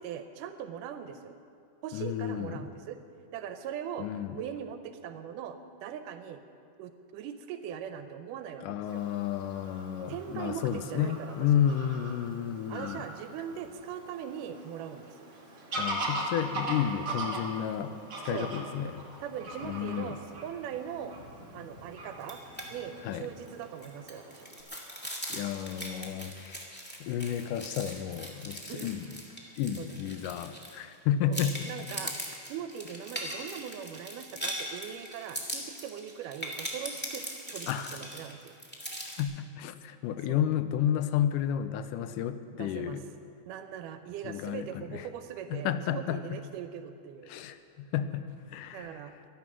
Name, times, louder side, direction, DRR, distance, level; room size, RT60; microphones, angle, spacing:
voice 1, 0.0-1.3 1.8-3.0 3.3-4.1 4.3-6.4 6.8-8.7 8.9-9.0 10.1-11.4 12.7-15.3 18.3-18.5 19.2-21.1 21.5-22.4 22.7-24.5 28.7-28.9 29.8-30.3 31.3-32.2 32.5-38.6 40.3-40.4 42.6-43.0 43.5-47.3 48.7-49.1, right 9 dB, 85° right, 8 dB, 2.2 m, -40 dB
voice 2, 1.9-2.7 4.0-4.4 8.6-13.0 15.8-18.0 18.3-19.0 19.6-20.2 23.0-23.3 25.3-26.7 27.0-29.1 29.6-31.7 37.7-38.0 39.2-43.0 44.2-45.1 45.5-46.2 47.3-49.0, left 9 dB, 85° left, 11 dB, 2.2 m, -31 dB
Fowl / Bird vocalization bird call bird song, 8.9-24.6, right 1 dB, 40° right, 2.5 m, -41 dB
sound 1, 22.2-22.7 23.0-23.1 23.5-30.9 31.3-39.2, equal, 5° left, 1.4 m, -40 dB
23.5 x 8.2 x 6.1 m, 2.4 s
omnidirectional pair, 3.6 m